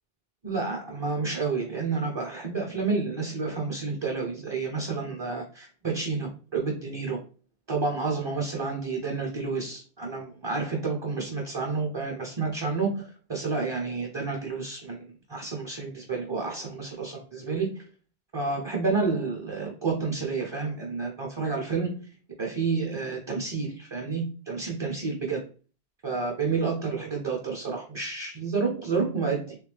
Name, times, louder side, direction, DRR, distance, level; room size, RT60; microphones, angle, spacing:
voice 1, 0.4-7.2 7.7-17.8 18.3-22.1 22.4-25.4 26.0-29.6, right 4 dB, 30° right, 0 dB, 0.6 m, -30 dB
3.3 x 3.1 x 3.3 m, 0.38 s
omnidirectional pair, 1.0 m